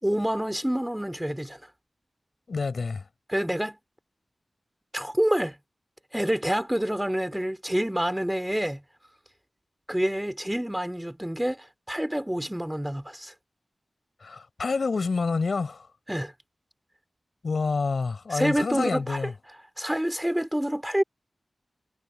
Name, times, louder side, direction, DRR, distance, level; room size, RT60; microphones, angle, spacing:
voice 1, 0.0-1.6 3.3-3.8 4.9-5.6 6.1-8.8 9.9-13.3 16.1-16.3 18.3-19.2 19.8-21.0, equal, 5° right, 4.0 m, -27 dB
voice 2, 2.5-3.0 14.2-15.9 17.4-19.3, left 4 dB, 70° left, 6.8 m, -28 dB
wide cardioid pair, 100°, 0 cm